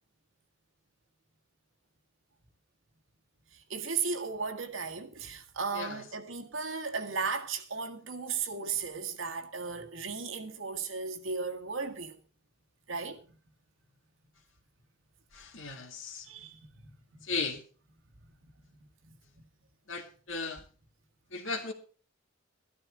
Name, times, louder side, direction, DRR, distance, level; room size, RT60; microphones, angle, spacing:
voice 1, 3.5-12.2 12.9-13.3 16.2-17.2 19.3-19.4, right 5 dB, 75° right, 1.9 m, -36 dB
voice 2, 5.7-6.0 15.3-16.3 17.2-17.6 19.9-20.6 21.3-21.7, left 4 dB, 70° left, 2.2 m, -36 dB
13.0 x 12.5 x 4.8 m
head